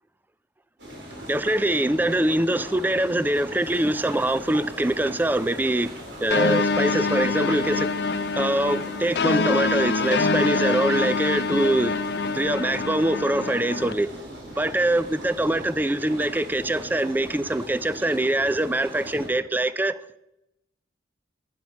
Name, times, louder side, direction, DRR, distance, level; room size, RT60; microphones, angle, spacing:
sound 1, 0.8-19.3, right 1 dB, 85° right, 3.7 m, -40 dB
voice 1, 1.3-7.9 8.4-12.0 12.3-14.1 14.6-19.9, right 1 dB, 10° right, 0.4 m, -24 dB
sound 2, 3.6-12.4, right 2 dB, 55° right, 5.6 m, -50 dB
sound 3, 6.3-13.9, left 4 dB, 65° left, 0.5 m, -25 dB
10.5 x 9.6 x 5.8 m
head